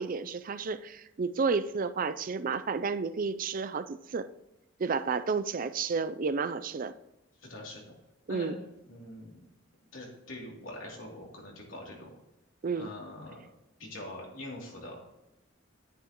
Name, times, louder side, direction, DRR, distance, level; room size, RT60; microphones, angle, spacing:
voice 1, 0.0-4.3 4.8-6.9 8.3-8.6 12.6-12.9, right 5 dB, 45° right, 0.5 m, -31 dB
voice 2, 7.4-7.8 8.3-9.5 9.9-12.1 12.8-13.5 13.8-15.0, left 1 dB, 80° left, 2.9 m, -43 dB
9.8 x 9.2 x 3.0 m
head